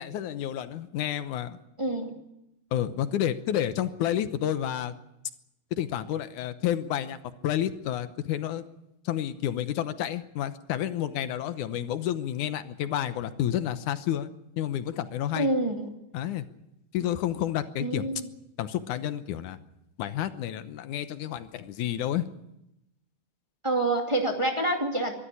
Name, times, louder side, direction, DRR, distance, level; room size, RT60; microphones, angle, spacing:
voice 1, 0.0-1.6 2.7-4.9 5.7-7.2 7.4-8.6 9.1-14.3 14.6-15.5 16.1-16.4 16.9-18.0 18.6-19.6 20.0-22.3, left 11 dB, 85° left, 11 dB, 2.4 m, -30 dB
voice 2, 1.8-2.2 15.4-15.9 17.8-18.3 23.6-25.1, right 1 dB, 10° right, 1 dB, 2.1 m, -27 dB
23.5 x 13.0 x 9.9 m, 0.87 s
omnidirectional pair, 3.5 m